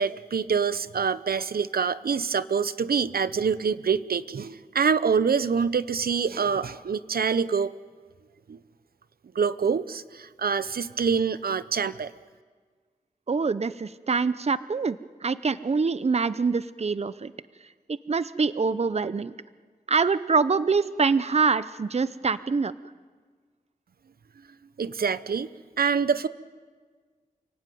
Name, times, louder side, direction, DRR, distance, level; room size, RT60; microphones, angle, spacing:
voice 1, 0.0-7.7 8.5-8.6 9.4-12.1 24.8-25.5 25.8-26.3, right 6 dB, 80° right, 14 dB, 0.8 m, -25 dB
voice 2, 13.3-17.3 17.9-19.3 19.9-22.7, right 4 dB, 45° right, 15 dB, 0.7 m, -25 dB
29.5 x 17.5 x 9.3 m, 1.5 s
wide cardioid pair, 65°, 15 cm